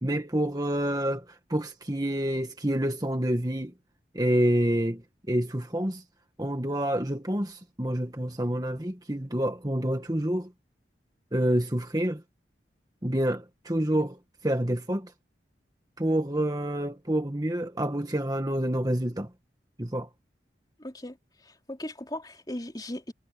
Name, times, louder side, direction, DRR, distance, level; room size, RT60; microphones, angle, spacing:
voice 1, 0.0-3.7 4.1-6.0 6.4-10.5 11.3-12.2 13.0-15.1 16.0-19.3 19.8-20.1, right 1 dB, 20° right, 1.6 m, -28 dB
voice 2, 20.8-21.2 21.4-23.1, left 1 dB, 20° left, 3.7 m, -37 dB
head